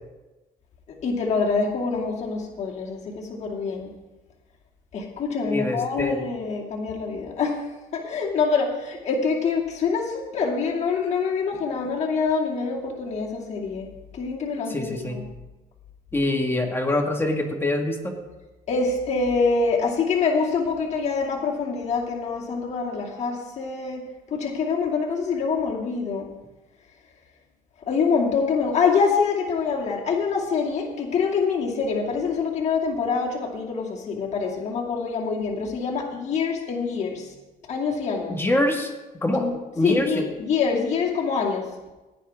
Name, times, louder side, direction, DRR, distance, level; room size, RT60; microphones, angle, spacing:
voice 1, 1.0-3.9 4.9-7.6 7.9-13.9 14.1-15.2 18.7-24.0 24.3-26.3 27.9-37.3 37.7-38.4 39.3-39.5 39.8-41.6, left 5 dB, 40° left, -3 dB, 2.5 m, -25 dB
voice 2, 5.5-6.2 14.7-15.2 16.1-18.1 38.3-38.9 39.2-39.5 39.8-40.2, left 1 dB, 15° left, 2 dB, 1.8 m, -24 dB
17.0 x 9.7 x 3.6 m, 1.1 s
cardioid pair, 110°, 17 cm